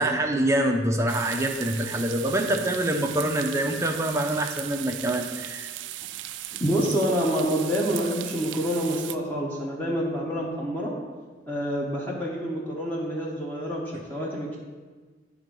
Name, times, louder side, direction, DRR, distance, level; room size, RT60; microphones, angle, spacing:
voice 1, 0.0-5.7, right 1 dB, 15° right, 3 dB, 0.5 m, -25 dB
sound 1, 1.1-9.2, right 14 dB, 90° right, 0.3 m, -37 dB
voice 2, 6.6-10.9 11.5-14.6, equal, 10° left, -4 dB, 0.9 m, -27 dB
9.0 x 3.5 x 5.3 m, 1.4 s
head